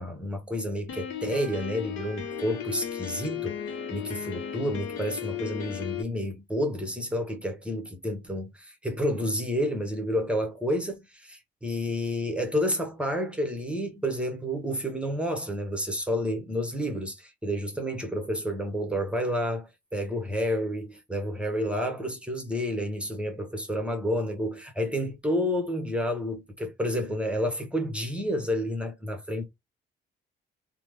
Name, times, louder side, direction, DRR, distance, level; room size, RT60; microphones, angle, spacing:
voice 1, 0.0-3.6 3.9-29.4, equal, 5° right, 0.9 m, -30 dB
Piano, 0.9-6.0, left 8 dB, 80° left, 0.8 m, -35 dB
2.9 x 2.0 x 3.3 m
cardioid pair, 90°, 20 cm